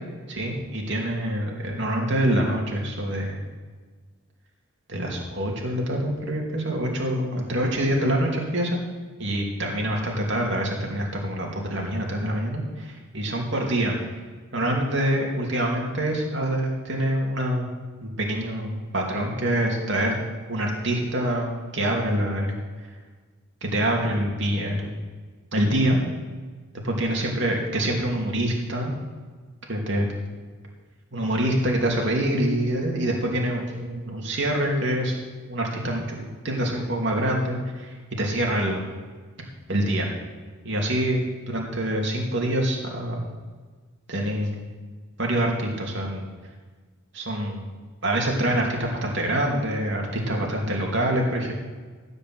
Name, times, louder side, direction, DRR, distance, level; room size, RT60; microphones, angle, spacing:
voice 1, 0.3-3.4 4.9-8.8 9.2-12.6 13.1-13.9 14.5-17.7 18.0-20.1 20.5-22.5 23.6-25.0 25.5-26.0 26.8-28.9 29.7-30.1 31.1-35.2 35.5-38.8 39.7-40.1 40.6-43.2 44.1-44.6 45.2-46.3 47.1-47.7 48.0-51.5, right 1 dB, 55° right, -1 dB, 2.8 m, -25 dB
15.5 x 5.4 x 7.9 m, 1.5 s
head